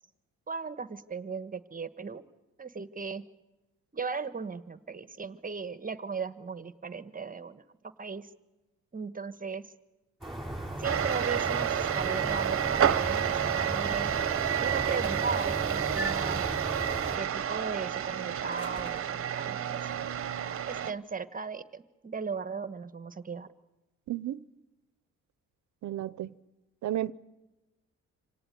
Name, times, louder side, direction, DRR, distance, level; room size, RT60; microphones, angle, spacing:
voice 1, 0.5-2.2 2.6-3.2 3.9-7.6 8.0-8.3 8.9-9.6 10.8-14.2 14.6-16.4 17.1-19.9 20.7-23.5, right 5 dB, 30° right, 1.4 m, -37 dB
sound 1, 10.2-17.2, right 1 dB, ahead, 7.6 m, -37 dB
sound 2, 10.8-20.9, right 9 dB, 45° right, 1.1 m, -30 dB
sound 3, 14.9-15.5 16.3-16.8 18.3-19.5, equal, 20° left, 2.9 m, -50 dB
voice 2, 24.1-24.4 25.8-26.3 26.8-27.1, right 13 dB, 70° right, 0.9 m, -32 dB
26.5 x 18.0 x 9.4 m
cardioid pair, 90°, 30 cm